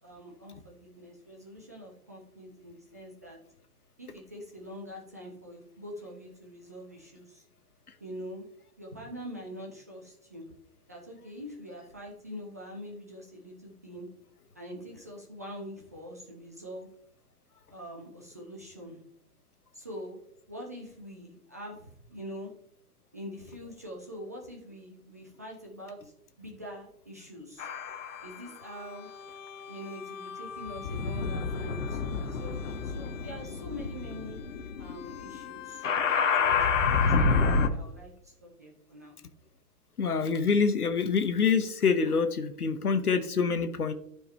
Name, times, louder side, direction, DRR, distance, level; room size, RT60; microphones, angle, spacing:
voice 1, 0.0-3.4 4.0-7.5 8.0-8.5 8.8-10.5 10.9-14.1 14.5-16.9 17.7-19.0 19.7-20.2 20.5-22.5 23.1-27.7 28.2-29.1 29.7-34.4 34.8-39.1, equal, 10° right, -1 dB, 0.4 m, -44 dB
sound 1, 27.6-28.4 29.2-37.7, left 4 dB, 55° left, 1.0 m, -29 dB
voice 2, 40.0-43.9, left 5 dB, 75° left, 9 dB, 0.9 m, -26 dB
12.0 x 4.8 x 3.3 m, 0.72 s
figure-of-eight pair, 120°, 46 cm